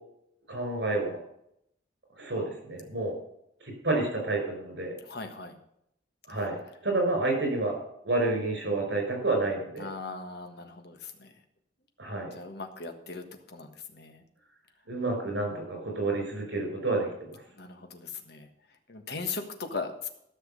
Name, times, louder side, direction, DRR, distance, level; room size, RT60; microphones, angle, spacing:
voice 1, 0.5-1.2 2.2-3.1 3.6-4.9 6.3-6.6 6.8-7.8 8.0-9.9 12.0-12.3 14.9-17.3, right 2 dB, 70° right, 3 dB, 4.9 m, -29 dB
voice 2, 5.0-5.5 9.8-11.3 12.3-14.2 17.6-18.5 18.9-20.1, left 4 dB, 60° left, 6 dB, 1.5 m, -39 dB
13.0 x 6.2 x 6.6 m, 0.75 s
head